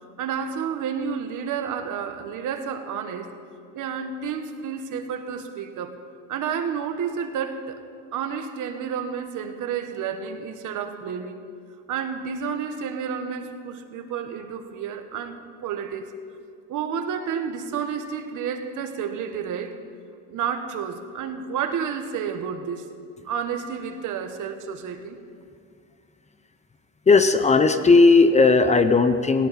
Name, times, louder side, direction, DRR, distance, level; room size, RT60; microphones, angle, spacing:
voice 1, 0.2-3.3 3.7-5.9 6.3-7.8 8.1-11.4 11.9-16.1 16.7-19.8 20.3-22.9 23.2-25.2, right 7 dB, 65° right, 7 dB, 1.5 m, -30 dB
voice 2, 27.1-29.5, left 3 dB, 20° left, 10 dB, 0.6 m, -16 dB
18.5 x 17.5 x 4.3 m, 2.4 s
cardioid pair, 135°, 33 cm